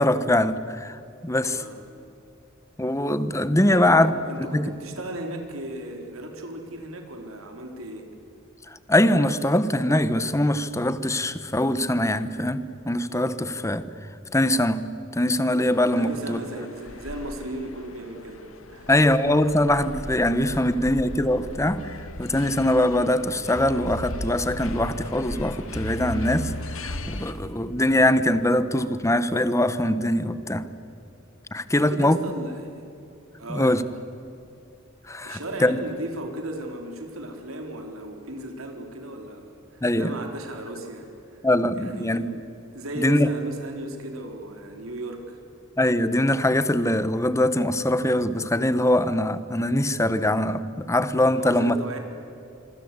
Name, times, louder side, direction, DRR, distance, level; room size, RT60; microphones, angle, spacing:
voice 1, 0.0-1.6 2.8-4.1 4.5-4.7 8.7-13.9 14.3-14.8 15.1-16.4 18.9-21.8 22.2-30.7 31.5-32.2 33.5-33.8 35.1-35.8 39.8-40.1 41.4-42.2 43.0-43.3 45.8-51.8, left 1 dB, 15° left, 13 dB, 1.1 m, -22 dB
voice 2, 3.6-8.1 16.0-18.9 31.7-32.8 33.4-33.8 35.2-41.4 41.8-42.4 42.7-45.4 51.3-52.0, right 1 dB, 85° right, 3 dB, 3.7 m, -36 dB
sound 1, 15.7-27.3, left 1 dB, 75° left, 2.1 m, -37 dB
26.0 x 24.0 x 8.2 m, 2.8 s
head